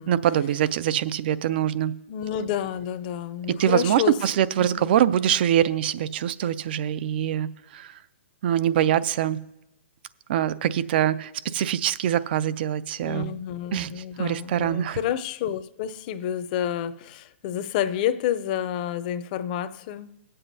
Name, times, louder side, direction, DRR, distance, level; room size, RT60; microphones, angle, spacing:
voice 1, 0.1-1.9 3.6-7.9 8.4-9.4 10.3-13.3 13.7-15.0, right 10 dB, 50° right, 0.4 m, -24 dB
voice 2, 2.1-4.2 4.6-5.1 13.0-20.2, left 10 dB, 40° left, 0.5 m, -29 dB
20.5 x 7.7 x 2.7 m
hypercardioid pair, 140°, 7 cm